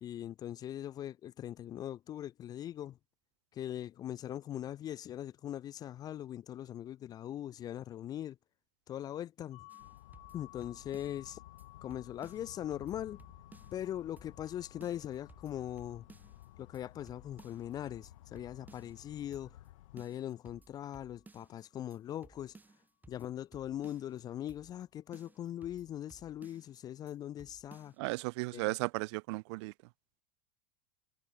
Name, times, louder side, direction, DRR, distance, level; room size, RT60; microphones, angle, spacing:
voice 1, 0.0-3.0 3.5-8.4 8.9-9.7 10.3-11.4 11.8-13.2 13.7-16.1 16.6-19.6 19.9-22.6 23.1-27.9 28.5-28.6, left 11 dB, 25° left, 0.4 m, -41 dB
sound 1, 9.5-21.3, left 22 dB, 45° left, 7.9 m, -61 dB
sound 2, 9.7-11.3 11.6-11.7 11.9-13.9 14.2-14.5 14.8-16.5 16.7-16.8 17.1-19.0 19.3-19.7 20.0-21.6 21.9-22.0 22.2-24.2 24.5-24.9 25.1-26.8 27.1-27.2 27.4-28.0, right 3 dB, 10° right, 5.1 m, -59 dB
sound 3, 9.8-20.1, left 15 dB, 85° left, 1.2 m, -55 dB
voice 2, 28.0-29.7, right 26 dB, 60° right, 0.6 m, -35 dB
supercardioid pair, 140°, 16 cm